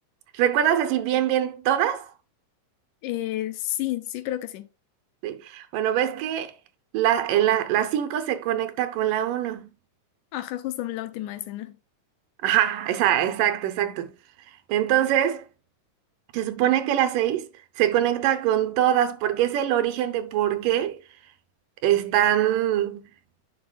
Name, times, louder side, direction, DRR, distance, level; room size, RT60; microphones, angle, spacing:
voice 1, 0.3-2.1 5.2-6.5 6.9-9.6 12.4-14.1 14.7-15.5 16.3-17.5 17.8-21.0 21.8-23.1, right 11 dB, 80° right, 2.4 m, -23 dB
voice 2, 3.0-4.7 10.3-11.8, left 14 dB, 80° left, 2.0 m, -30 dB
9.8 x 5.5 x 2.3 m
omnidirectional pair, 3.8 m